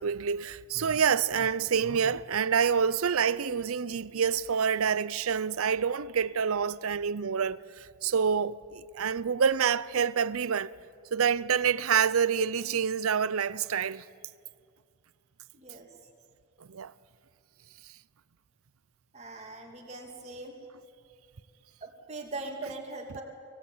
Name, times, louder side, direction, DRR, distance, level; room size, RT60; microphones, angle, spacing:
voice 1, 0.0-10.7 11.1-14.0 16.6-16.9 23.1-23.2, right 7 dB, 80° right, 0.6 m, -27 dB
voice 2, 15.5-15.9 19.1-20.5 21.8-23.2, right 2 dB, 30° right, 2.7 m, -40 dB
24.5 x 17.5 x 8.6 m
head